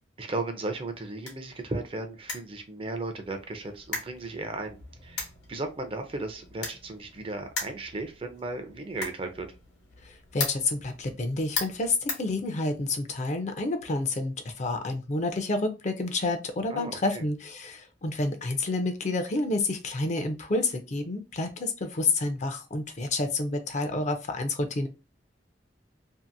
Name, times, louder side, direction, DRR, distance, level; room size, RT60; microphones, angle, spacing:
voice 1, 0.2-9.5 16.7-17.2, right 2 dB, 30° right, 6 dB, 0.5 m, -35 dB
sound 1, 0.7-13.0, left 3 dB, 75° left, 1.1 m, -40 dB
voice 2, 10.0-24.9, left 2 dB, 40° left, 7 dB, 0.5 m, -29 dB
2.7 x 2.5 x 2.5 m, 0.29 s
head